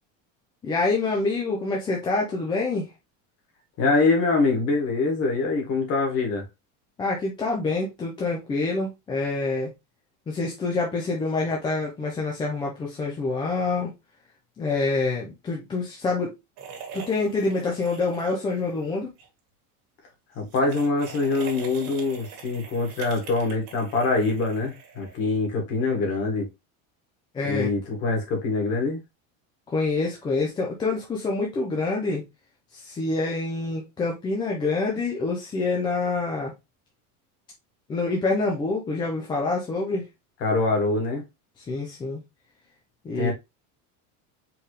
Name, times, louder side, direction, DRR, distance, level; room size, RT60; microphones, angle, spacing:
voice 1, 0.6-2.9 7.0-9.7 10.3-13.9 14.6-16.3 16.9-19.1 27.3-27.7 29.7-32.2 32.7-36.5 37.9-40.1 41.6-42.2 43.0-43.3, left 3 dB, 10° left, 0.5 m, -26 dB
voice 2, 3.8-6.4 20.4-26.5 27.5-29.0 40.4-41.2 43.1-43.3, left 3 dB, 35° left, 1.8 m, -24 dB
sound 1, 16.6-18.8 19.1-19.3 20.4-25.4, right 6 dB, 50° right, 1.7 m, -43 dB
4.6 x 3.6 x 3.1 m
cardioid pair, 180°, 42 cm